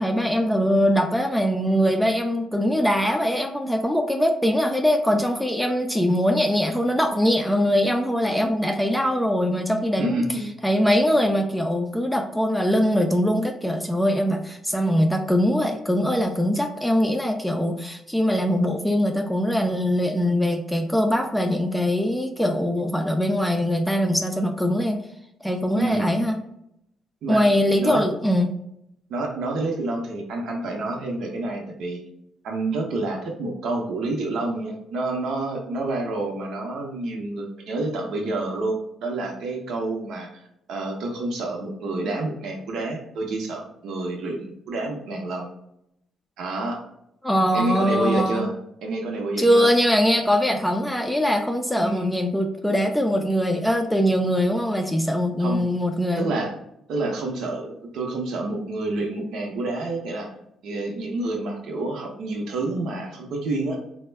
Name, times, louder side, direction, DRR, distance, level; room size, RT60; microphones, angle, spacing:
voice 1, 0.0-25.0 25.4-26.4 27.3-28.5 47.2-48.4 49.4-56.3, equal, 5° left, 3 dB, 0.4 m, -22 dB
voice 2, 10.0-10.5 25.7-26.1 27.2-27.4 27.8-28.0 29.1-32.0 32.4-40.4 40.7-45.5 46.4-46.8 47.5-48.5 48.8-49.7 51.8-52.1 55.4-55.6 56.2-56.5 56.9-60.3 60.6-63.8, right 2 dB, 75° right, 1 dB, 0.8 m, -28 dB
3.4 x 2.1 x 3.3 m, 0.76 s
cardioid pair, 90°, 0 cm